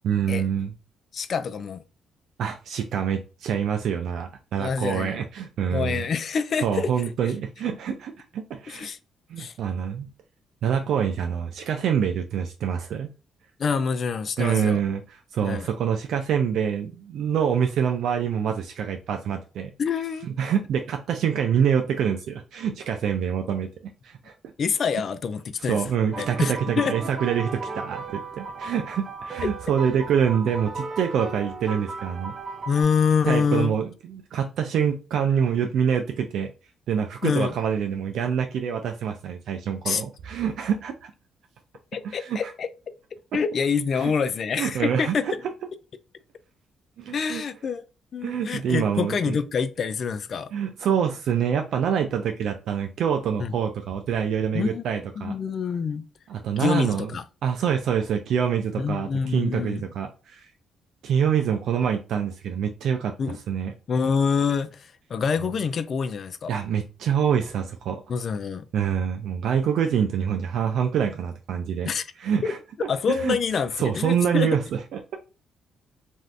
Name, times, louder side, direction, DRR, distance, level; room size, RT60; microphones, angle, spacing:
voice 1, 0.0-0.7 2.4-6.1 6.6-8.9 9.3-10.1 10.6-13.1 14.4-19.7 20.4-23.7 24.0-24.3 25.6-32.3 33.3-36.5 36.9-41.1 42.0-42.5 43.9-44.1 44.6-45.3 47.0-47.4 48.2-49.4 50.5-55.4 56.3-57.1 57.4-60.5 61.0-63.1 63.5-63.7 66.5-68.0 68.7-71.9 72.2-72.6 73.1-73.4 73.8-75.2, right 8 dB, 75° right, 0.4 m, -26 dB
voice 2, 1.1-1.8 4.6-5.2 5.7-6.9 8.7-9.0 9.4-9.5 13.6-14.8 15.4-15.7 19.8-20.3 24.6-25.8 26.2-27.0 29.4-29.5 32.7-33.7 37.2-37.5 39.9-40.0 41.9-42.9 43.3-45.4 47.1-47.8 48.1-50.5 53.4-53.5 54.5-54.9 55.2-56.0 56.6-57.2 58.8-59.9 63.2-63.4 63.9-66.5 68.1-68.6 71.8-72.0 72.4-72.5 72.9-74.5, left 6 dB, 50° left, 0.4 m, -26 dB
sound 1, 26.1-32.8, right 4 dB, 35° right, 0.6 m, -36 dB
2.6 x 2.4 x 3.3 m
cardioid pair, 90°, 0 cm